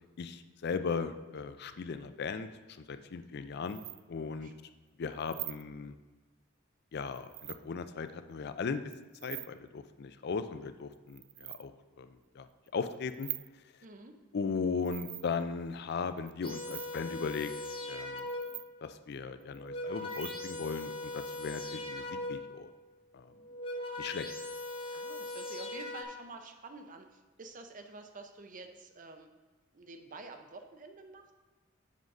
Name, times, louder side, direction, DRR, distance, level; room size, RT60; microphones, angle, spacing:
voice 1, 0.2-2.5 2.9-3.8 4.1-4.5 5.0-5.9 6.9-8.8 9.2-11.7 12.0-12.1 12.4-12.5 12.7-13.3 14.3-17.5 17.9-18.3 18.8-22.7 23.1-23.3 24.0-24.3, left 5 dB, 55° left, 11 dB, 0.4 m, -37 dB
sound 1, 3.7-4.0 5.2-5.6 7.0-7.6 8.9-9.5 10.9-11.6 12.7-13.5 14.9-15.4 16.2-17.0 18.2-18.7 19.4-19.6 20.0-20.4, right 18 dB, 85° right, 0.3 m, -43 dB
voice 2, 13.8-14.2 24.9-29.3 29.7-31.3, right 3 dB, 40° right, 6 dB, 0.7 m, -49 dB
sound 2, 16.4-18.7 19.4-22.6 23.3-26.0, left 1 dB, 25° left, 0.8 m, -40 dB
7.3 x 3.9 x 6.1 m, 1.2 s
head